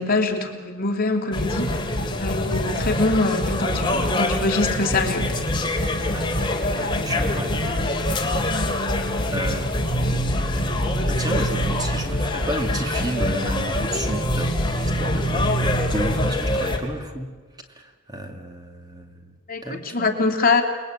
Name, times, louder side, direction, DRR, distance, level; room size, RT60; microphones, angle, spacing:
voice 1, 0.0-1.7 2.2-5.3 8.5-8.7 11.3-11.5 19.5-20.6, left 3 dB, 45° left, 4 dB, 3.2 m, -23 dB
sound 1, 1.3-16.8, left 1 dB, 25° left, 3.1 m, -24 dB
voice 2, 6.7-7.7 8.3-8.5 9.3-9.7 10.0-17.3 17.7-19.3 19.6-20.2, equal, 20° right, 4 dB, 2.5 m, -32 dB
29.5 x 21.5 x 9.0 m, 1.4 s
head